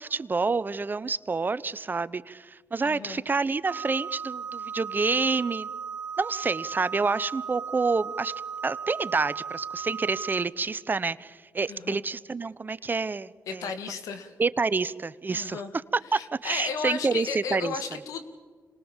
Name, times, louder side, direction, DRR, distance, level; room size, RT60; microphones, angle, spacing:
voice 1, 0.0-5.7 6.2-8.3 8.6-14.0 14.4-15.6 16.1-17.8, right 4 dB, 35° right, 17 dB, 0.8 m, -28 dB
voice 2, 2.8-3.2 11.7-12.0 13.5-14.3 15.3-15.7 16.2-18.2, left 6 dB, 80° left, 8 dB, 2.0 m, -34 dB
sound 1, 3.6-10.4, right 6 dB, 85° right, 1.7 m, -36 dB
26.5 x 20.5 x 7.3 m, 1.5 s
supercardioid pair, 55°, 6 cm